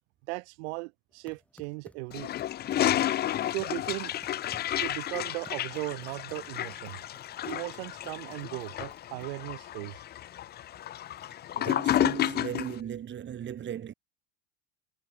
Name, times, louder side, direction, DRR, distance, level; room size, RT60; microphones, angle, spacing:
voice 1, 0.3-2.3 2.8-2.9 3.5-4.1 4.8-7.0 7.4-10.0, right 28 dB, 70° right, 1.6 m, -37 dB
sound 1, 1.1-9.5, left 1 dB, 5° left, 4.5 m, -57 dB
Toilet flush, 2.1-12.8, left 12 dB, 30° left, 0.7 m, -31 dB
voice 2, 11.5-13.9, right 9 dB, 30° right, 6.2 m, -37 dB
supercardioid pair, 125°, 35 cm